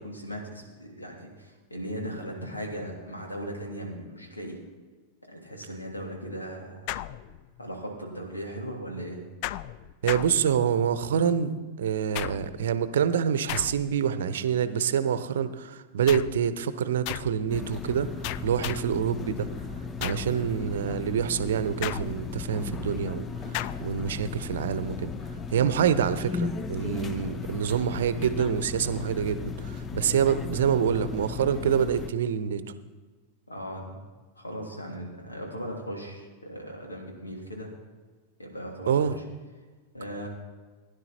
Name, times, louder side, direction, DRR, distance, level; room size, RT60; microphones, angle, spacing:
voice 1, 0.0-4.6 5.3-7.0 7.6-9.2 20.2-20.5 33.5-34.0 34.4-37.7 38.4-39.2 39.9-40.3, equal, 80° left, 0 dB, 3.1 m, -38 dB
sound 1, 6.9-7.7 9.4-10.9 12.1-12.7 13.5-14.1 16.1-16.5 17.1-17.5 18.2-19.0 20.0-20.4 21.8-22.5 23.5-24.0, left 14 dB, 45° left, 0.4 m, -36 dB
voice 2, 10.0-18.1 18.4-19.5 20.0-25.1 25.5-32.6 38.9-39.2, right 8 dB, 60° right, 13 dB, 0.8 m, -26 dB
sound 2, 17.5-32.1, left 4 dB, 20° left, 0.8 m, -36 dB
16.0 x 10.5 x 4.3 m, 1.4 s
figure-of-eight pair, 90°, 0 cm